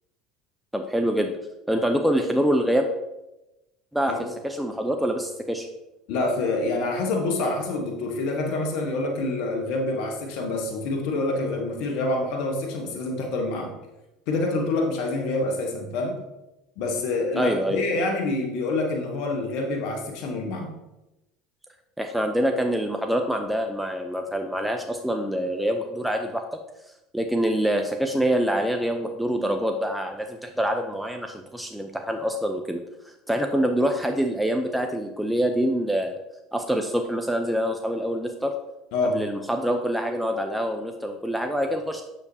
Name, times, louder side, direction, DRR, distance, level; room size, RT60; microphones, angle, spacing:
voice 1, 0.7-1.4 1.7-2.9 3.9-4.1 4.4-5.7 17.3-17.8 22.0-26.4 27.1-32.8 33.3-36.2 36.5-38.5 39.1-42.0, equal, 5° right, 4 dB, 0.6 m, -25 dB
voice 2, 6.1-13.7 14.3-16.2 16.8-20.7 38.9-39.2, left 2 dB, 65° left, 2 dB, 1.1 m, -27 dB
7.1 x 6.6 x 2.7 m, 0.97 s
hypercardioid pair, 75°, 0 cm